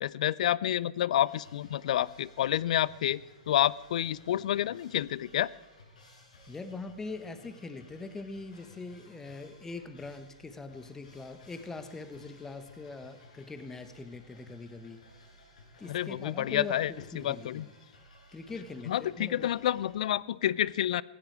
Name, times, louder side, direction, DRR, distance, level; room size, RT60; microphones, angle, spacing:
voice 1, 0.0-3.2 3.5-5.5 15.9-17.7 18.9-21.0, left 12 dB, 65° left, 22 dB, 0.5 m, -29 dB
sound 1, 1.2-19.9, left 1 dB, 90° left, 6.0 m, -57 dB
voice 2, 6.5-15.0 15.8-17.7 18.3-19.5, left 3 dB, 10° left, 10 dB, 1.3 m, -42 dB
16.0 x 15.5 x 4.8 m, 1.1 s
hypercardioid pair, 130°, 4 cm